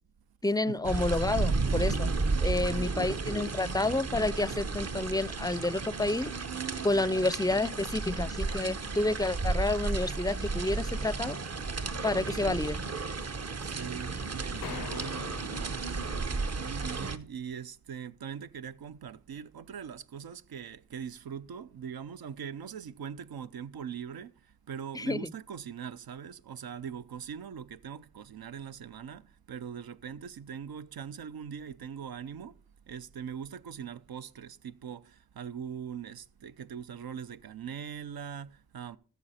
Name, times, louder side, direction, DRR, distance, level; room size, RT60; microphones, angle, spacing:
voice 1, 0.4-2.1 2.4-6.3 6.8-11.4 12.0-12.8 24.9-25.3, left 2 dB, 10° left, 0.4 m, -29 dB
sound 1, 0.8-17.2, right 3 dB, 45° right, 0.8 m, -33 dB
voice 2, 2.6-3.1 13.6-15.8 16.6-39.0, right 8 dB, 85° right, 0.6 m, -41 dB
sound 2, 14.6-16.6, left 11 dB, 80° left, 0.5 m, -45 dB
13.5 x 6.8 x 4.2 m
cardioid pair, 50°, 36 cm